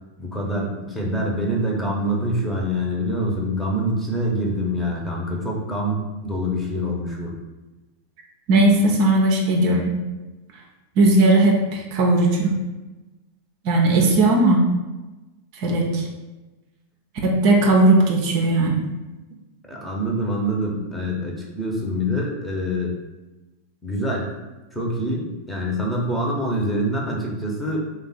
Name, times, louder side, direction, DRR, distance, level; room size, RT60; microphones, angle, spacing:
voice 1, 0.2-7.3 14.0-14.2 19.7-22.9 23.8-24.3 24.7-27.8, equal, 5° left, -2 dB, 0.8 m, -25 dB
voice 2, 8.5-10.0 11.0-12.6 13.6-14.6 15.5-16.1 17.2-18.8, right 2 dB, 50° right, 0 dB, 0.6 m, -17 dB
3.4 x 2.3 x 4.0 m, 1.1 s
figure-of-eight pair, 90°, 0 cm